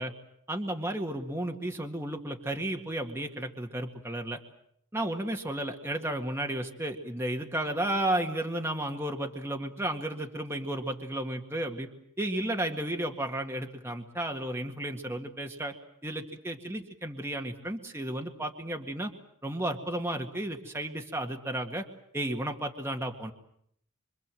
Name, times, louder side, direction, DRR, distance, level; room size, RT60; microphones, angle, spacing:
voice 1, 0.5-4.4 4.9-11.9 12.2-15.7 16.0-19.1 19.4-21.8 22.1-23.3, right 1 dB, 10° right, 2 dB, 1.9 m, -33 dB
25.5 x 25.0 x 7.7 m, 0.69 s
head